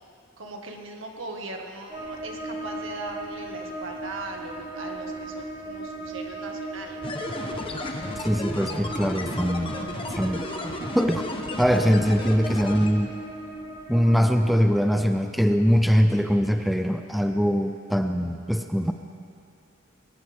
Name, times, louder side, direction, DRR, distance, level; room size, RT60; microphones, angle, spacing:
voice 1, 0.4-7.1, right 2 dB, 75° right, 2 dB, 1.9 m, -39 dB
sound 1, 1.9-14.5, right 2 dB, 25° right, 1.9 m, -37 dB
sound 2, 7.0-12.9, left 1 dB, 25° left, 1.2 m, -34 dB
voice 2, 8.2-9.8 10.1-10.5 10.9-11.2 11.6-13.1 13.9-18.9, equal, ahead, 6 dB, 0.5 m, -22 dB
21.5 x 18.5 x 3.6 m, 2.5 s
head